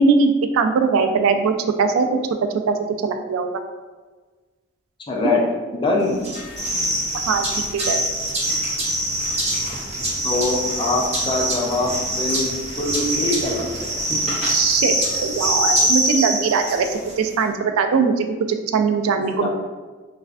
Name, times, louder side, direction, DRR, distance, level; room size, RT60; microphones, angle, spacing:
voice 1, 0.0-2.1 2.7-3.5 7.3-8.0 14.5-19.5, right 5 dB, 85° right, 6 dB, 0.3 m, -20 dB
voice 2, 5.1-5.4 5.7-6.2 10.2-14.2 19.4-19.5, left 2 dB, 25° left, -1 dB, 0.4 m, -23 dB
sound 1, 6.2-17.1, right 1 dB, 30° right, 0.9 m, -24 dB
3.2 x 2.4 x 2.3 m, 1.3 s
head